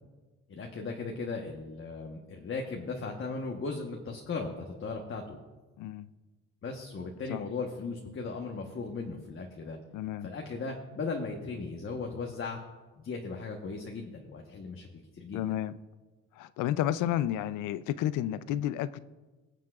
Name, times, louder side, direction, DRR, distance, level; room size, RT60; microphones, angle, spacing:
voice 1, 0.5-5.4 6.6-9.8 10.2-12.6 13.0-14.9 15.1-15.4, left 4 dB, 45° left, 2 dB, 1.2 m, -37 dB
voice 2, 9.9-10.3 15.3-15.7 16.4-19.0, left 12 dB, 90° left, 16 dB, 0.5 m, -31 dB
21.5 x 7.4 x 2.4 m, 1.2 s
cardioid pair, 90°, 30 cm